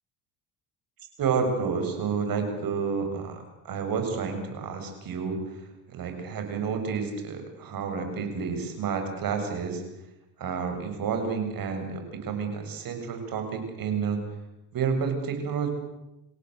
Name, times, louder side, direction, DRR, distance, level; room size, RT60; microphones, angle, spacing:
voice 1, 1.2-3.4 3.6-5.4 5.9-9.8 10.4-14.2 14.7-15.7, right 5 dB, 50° right, 5 dB, 7.7 m, -30 dB
29.0 x 17.0 x 8.1 m, 0.90 s
supercardioid pair, 85°, 42 cm